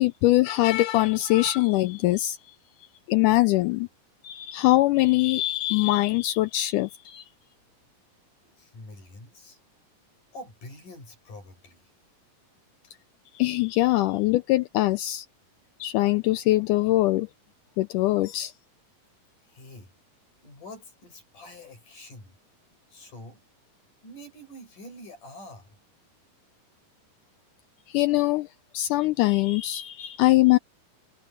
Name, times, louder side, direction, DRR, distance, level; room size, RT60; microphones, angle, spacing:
voice 1, 0.0-2.6 3.1-3.9 4.2-7.3 13.3-15.3 15.8-17.3 17.8-18.5 27.9-28.5 28.7-30.6, left 17 dB, 80° left, 1.9 m, -22 dB
voice 2, 8.4-9.6 10.3-11.9 19.4-19.9 20.4-22.4 22.9-23.4 24.0-25.8, left 1 dB, 60° left, 9.4 m, -46 dB
omnidirectional pair, 4.0 m